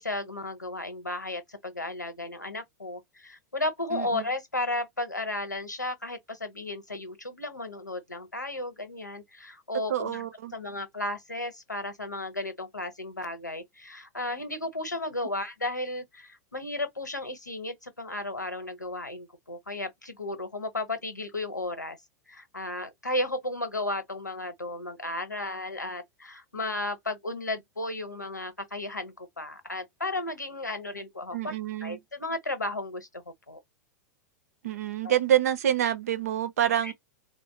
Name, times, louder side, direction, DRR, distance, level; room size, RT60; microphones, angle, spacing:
voice 1, 0.0-10.3 10.5-22.0 22.3-31.6 31.8-33.6 35.0-35.1 36.8-36.9, left 2 dB, 85° left, 1.0 m, -34 dB
voice 2, 3.9-4.3 9.9-10.5 31.3-32.0 34.6-36.9, right 11 dB, 60° right, 0.6 m, -27 dB
3.8 x 2.0 x 2.7 m
figure-of-eight pair, 95°, 9 cm